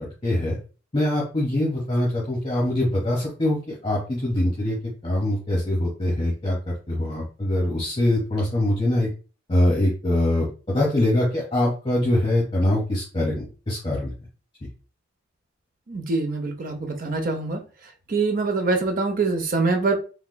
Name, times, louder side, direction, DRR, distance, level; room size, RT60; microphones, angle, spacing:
voice 1, 0.2-0.6 0.9-4.8 5.0-6.6 6.9-9.1 9.5-14.1, left 1 dB, 25° left, -4 dB, 0.9 m, -23 dB
voice 2, 15.9-17.6 18.1-19.9, right 3 dB, 40° right, 4 dB, 0.6 m, -24 dB
3.2 x 2.9 x 2.2 m, 0.35 s
head